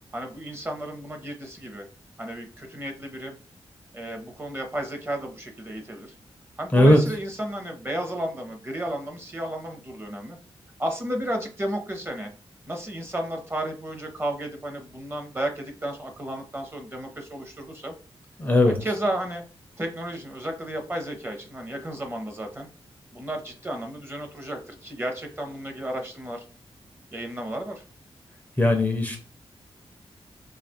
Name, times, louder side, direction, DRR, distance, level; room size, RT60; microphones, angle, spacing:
voice 1, 0.1-1.8 2.2-3.4 3.9-6.1 6.6-10.4 10.8-12.3 12.7-17.9 18.6-19.4 19.8-22.7 23.1-26.5 27.1-27.8, right 1 dB, 25° right, 4 dB, 0.8 m, -33 dB
voice 2, 18.4-18.8 28.6-29.2, left 1 dB, 15° left, 2 dB, 0.5 m, -18 dB
2.8 x 2.4 x 4.1 m, 0.36 s
wide cardioid pair, 130°, 10 cm